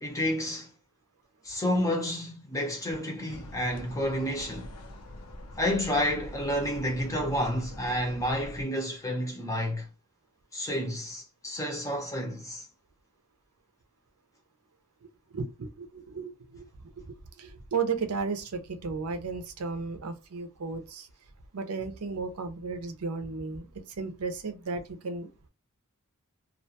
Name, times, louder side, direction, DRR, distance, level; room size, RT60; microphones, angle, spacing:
voice 1, 0.0-0.7 1.4-4.7 5.6-9.9 10.5-12.7, equal, 15° left, 0.6 m, -30 dB
sound 1, 3.3-8.6, left 1 dB, 85° left, 0.6 m, -44 dB
voice 2, 15.3-16.7 17.0-21.1 21.5-23.7 24.0-25.5, right 4 dB, 80° right, 0.6 m, -34 dB
2.4 x 2.2 x 2.7 m
head